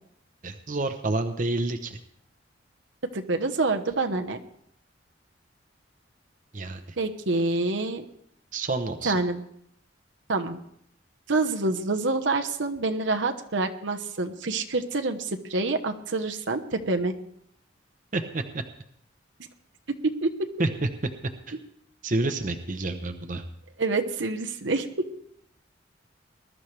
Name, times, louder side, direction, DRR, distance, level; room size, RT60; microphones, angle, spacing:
voice 1, 0.4-2.0 6.5-7.0 8.5-9.1 18.1-18.6 20.6-20.7 21.5-21.6 22.0-23.4, right 2 dB, 45° right, 7 dB, 0.9 m, -29 dB
voice 2, 3.1-4.4 7.0-8.0 9.0-9.4 10.3-10.6 11.3-17.1 20.2-20.3 23.8-24.9, right 3 dB, 75° right, 5 dB, 1.1 m, -27 dB
20.5 x 12.5 x 3.3 m, 0.70 s
head